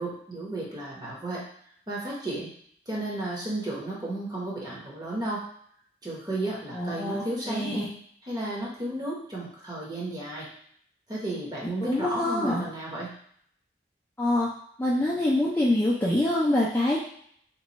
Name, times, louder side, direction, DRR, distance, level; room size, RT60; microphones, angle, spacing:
voice 1, 0.0-1.5 1.9-2.5 2.9-5.4 6.0-7.9 8.3-10.5 11.1-13.1, right 1 dB, 20° right, -5 dB, 0.9 m, -33 dB
voice 2, 6.7-7.9 11.9-12.7 14.2-14.5 14.8-17.0, left 1 dB, 10° left, -6 dB, 0.4 m, -25 dB
3.0 x 2.3 x 4.0 m, 0.63 s
head